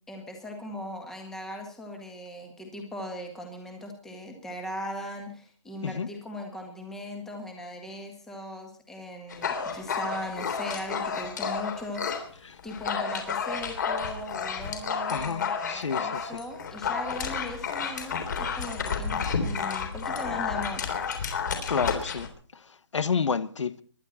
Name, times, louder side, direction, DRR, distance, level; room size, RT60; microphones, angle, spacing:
voice 1, 0.1-12.3 12.6-20.8, left 1 dB, 5° left, 1.7 m, -39 dB
Dog, 9.3-12.2 12.6-22.3, left 6 dB, 35° left, 3.4 m, -31 dB
voice 2, 15.1-16.3 21.7-22.3 22.9-23.7, left 5 dB, 70° left, 1.4 m, -29 dB
24.0 x 11.5 x 4.3 m
hypercardioid pair, 175°, 16 cm